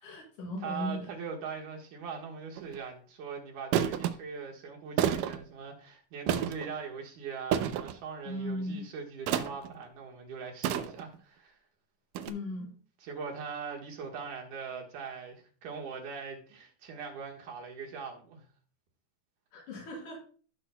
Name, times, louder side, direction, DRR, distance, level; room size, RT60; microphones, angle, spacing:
voice 1, 0.0-1.1 8.3-8.8 12.3-12.7 19.5-20.3, left 1 dB, 75° left, 5.6 m, -37 dB
voice 2, 0.6-11.6 13.0-18.5, right 5 dB, 70° right, 2.9 m, -41 dB
sound 1, 2.6-2.8 3.7-4.1 5.0-5.4 6.3-6.7 7.5-8.0 9.3-9.7 10.6-11.2 12.2-12.3, right 10 dB, 85° right, 2.3 m, -29 dB
16.5 x 6.1 x 2.3 m
omnidirectional pair, 3.7 m